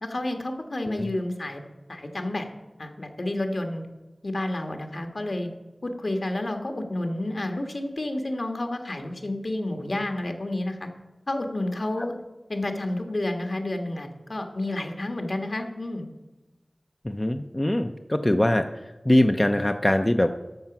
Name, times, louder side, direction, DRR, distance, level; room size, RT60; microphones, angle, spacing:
voice 1, 0.0-2.5 2.8-3.9 4.2-5.5 5.8-10.9 11.3-12.2 12.5-16.1, left 1 dB, 65° left, 4 dB, 1.5 m, -30 dB
voice 2, 17.0-18.7 19.0-20.3, left 1 dB, 25° left, 6 dB, 0.6 m, -22 dB
13.0 x 5.8 x 6.0 m, 1.1 s
wide cardioid pair, 50°, 0 cm